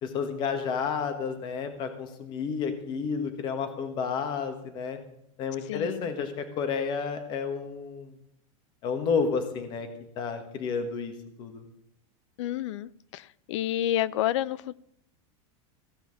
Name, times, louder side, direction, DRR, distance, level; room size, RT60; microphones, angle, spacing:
voice 1, 0.0-5.0 5.4-8.1 8.8-9.9 10.2-11.1 11.4-11.6, left 5 dB, 25° left, 8 dB, 1.3 m, -31 dB
voice 2, 5.7-6.1 12.4-14.8, left 12 dB, 60° left, 22 dB, 0.5 m, -30 dB
15.5 x 5.8 x 8.5 m, 0.76 s
supercardioid pair, 175°, 17 cm